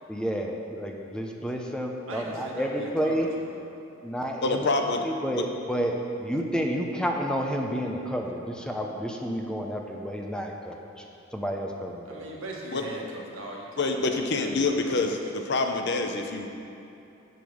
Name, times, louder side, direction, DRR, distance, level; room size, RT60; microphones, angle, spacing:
voice 1, 0.1-3.3 4.0-4.7 5.0-11.0 11.3-12.3, equal, 5° left, 1 dB, 0.6 m, -30 dB
voice 2, 2.1-3.6 12.0-15.1, right 1 dB, 85° right, -1 dB, 1.5 m, -40 dB
voice 3, 4.4-5.0 5.3-5.5 12.7-12.9 13.8-16.5, left 3 dB, 55° left, 4 dB, 0.7 m, -26 dB
7.2 x 6.6 x 6.1 m, 2.8 s
head